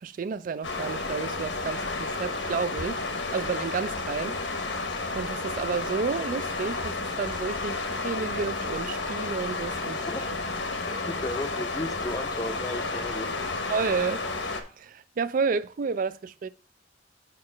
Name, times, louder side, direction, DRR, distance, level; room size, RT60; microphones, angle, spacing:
voice 1, 0.0-3.0 3.3-4.4 5.1-10.1 13.7-14.2 14.8-16.5, right 5 dB, 45° right, 0.3 m, -31 dB
sound 1, 0.6-14.6, left 3 dB, 85° left, 1.0 m, -31 dB
voice 2, 9.9-10.3 10.9-13.3, left 2 dB, 20° left, 0.5 m, -35 dB
4.8 x 4.6 x 6.0 m
head